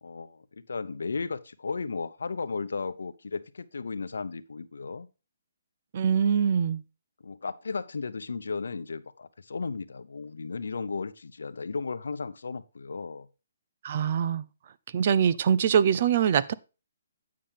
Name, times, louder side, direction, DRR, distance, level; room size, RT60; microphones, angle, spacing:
voice 1, 0.0-5.1 7.2-13.3, left 4 dB, 85° left, 0.8 m, -35 dB
voice 2, 5.9-6.8 13.8-14.4 14.9-16.5, right 8 dB, 45° right, 0.5 m, -23 dB
8.6 x 7.4 x 3.4 m
hypercardioid pair, 155°, 0 cm